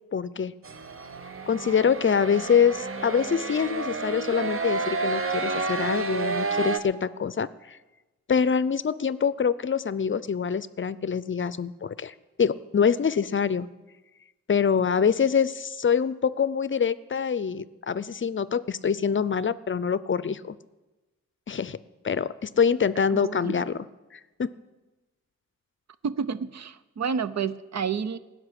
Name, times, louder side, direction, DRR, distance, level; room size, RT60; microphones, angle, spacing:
voice 1, 0.1-0.5 1.5-7.8 8.3-13.7 14.5-20.6 21.5-21.8 22.0-23.9 24.1-24.5, left 7 dB, 45° left, 17 dB, 0.5 m, -25 dB
sound 1, 0.6-6.8, right 4 dB, 50° right, 1.1 m, -30 dB
voice 2, 23.1-23.5 26.0-28.2, right 6 dB, 65° right, 14 dB, 0.7 m, -30 dB
16.0 x 6.6 x 9.9 m, 1.1 s
cardioid pair, 70°, 29 cm